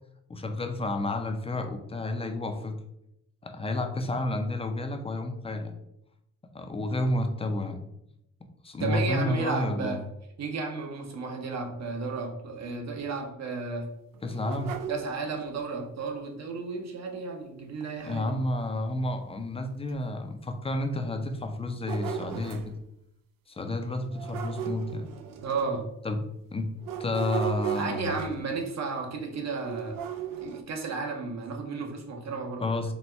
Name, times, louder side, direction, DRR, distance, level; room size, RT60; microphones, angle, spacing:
voice 1, 0.3-2.8 3.4-5.7 6.5-7.8 8.6-10.0 14.2-14.8 18.0-22.7 23.5-25.1 26.0-26.2 26.5-26.7 27.0-28.1 32.6-32.9, left 2 dB, 20° left, 5 dB, 0.4 m, -30 dB
voice 2, 8.8-10.0 10.4-13.9 14.9-18.3 25.4-25.8 27.7-30.0 30.4-32.7, right 4 dB, 55° right, 3 dB, 0.9 m, -33 dB
sound 1, 14.1-15.6 17.8-17.9 18.4-18.5 19.2-19.3 19.9-20.0 21.5-22.8 24.1-25.9 26.8-28.7 29.6-30.6, right 9 dB, 85° right, 0.5 m, -36 dB
4.1 x 2.2 x 4.3 m, 0.81 s
cardioid pair, 130°, 33 cm